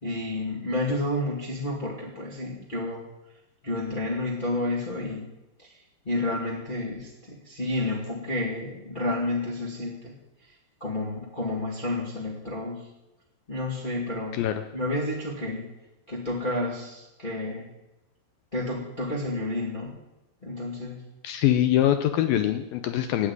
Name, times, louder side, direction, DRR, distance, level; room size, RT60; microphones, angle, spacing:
voice 1, 0.0-3.0 3.6-5.3 5.6-5.7 6.0-10.1 10.8-12.9 13.5-14.4 14.7-15.7 16.1-17.7 18.5-19.9 20.4-21.0, left 1 dB, 20° left, -4 dB, 1.3 m, -30 dB
voice 2, 21.2-23.3, left 12 dB, 85° left, 8 dB, 2.0 m, -23 dB
15.0 x 8.9 x 9.6 m, 0.97 s
omnidirectional pair, 5.1 m